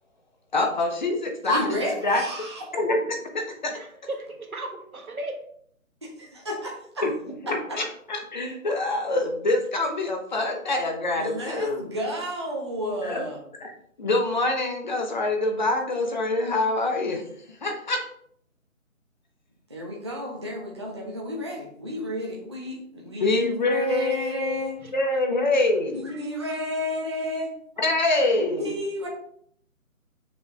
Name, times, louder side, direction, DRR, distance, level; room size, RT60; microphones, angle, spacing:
voice 1, 0.5-1.7 2.0-2.2 2.7-3.0 3.3-3.7 7.0-7.1 7.7-11.9 13.0-13.2 13.6-13.7 14.0-17.2 17.6-18.0 23.2-24.6 24.9-26.1 27.8-28.7, left 2 dB, 35° left, 3 dB, 1.0 m, -25 dB
voice 2, 1.5-2.6 6.0-7.1 7.5-7.8 11.2-13.4 19.7-24.8 25.9-27.5 28.4-29.1, equal, 20° right, -2 dB, 0.6 m, -31 dB
voice 3, 4.1-5.4, right 2 dB, 85° right, 2 dB, 1.7 m, -34 dB
6.3 x 5.0 x 3.5 m, 0.65 s
figure-of-eight pair, 155°, 42 cm